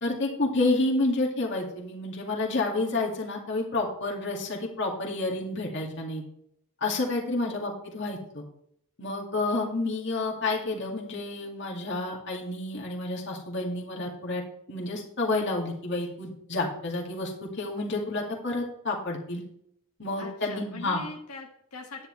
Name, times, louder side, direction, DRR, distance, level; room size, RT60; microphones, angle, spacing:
voice 1, 0.0-6.2 6.8-8.4 9.0-14.4 14.7-19.4 20.0-21.0, left 2 dB, 55° left, -2 dB, 2.2 m, -29 dB
voice 2, 7.4-7.7 20.2-22.1, left 3 dB, 90° left, -1 dB, 1.8 m, -42 dB
10.0 x 9.9 x 3.2 m, 0.72 s
head